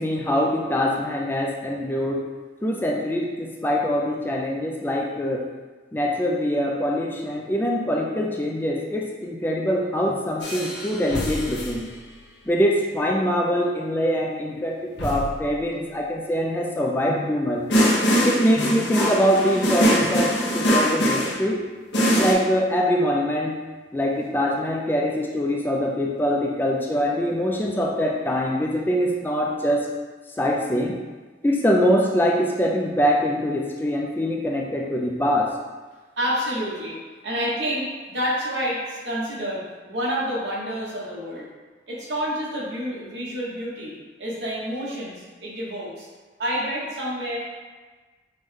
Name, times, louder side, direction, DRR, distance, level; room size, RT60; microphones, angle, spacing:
voice 1, 0.0-2.3 2.6-5.5 5.9-11.9 12.5-17.7 18.2-21.6 22.2-23.6 23.9-29.9 30.4-31.0 31.4-35.5, equal, 10° left, -1 dB, 0.3 m, -23 dB
sound 1, 9.6-10.5 11.2-11.7 13.0-13.3 14.1-16.5 17.1-17.5 18.6-19.0 19.7-19.8 20.0-20.4 21.5-22.0 22.3-22.4 22.6-22.8 23.2-23.6 23.9-24.9 25.3-25.8 26.1-27.3 27.6-27.7, equal, 35° right, 0.7 m, -40 dB
sound 2, 10.4-11.8 15.0-15.4 17.7-21.4 21.9-22.3, equal, 85° left, 0.7 m, -22 dB
voice 2, 36.2-41.5 41.9-46.1 46.4-47.6, equal, 85° right, -5 dB, 1.1 m, -29 dB
5.3 x 2.1 x 3.3 m, 1.3 s
head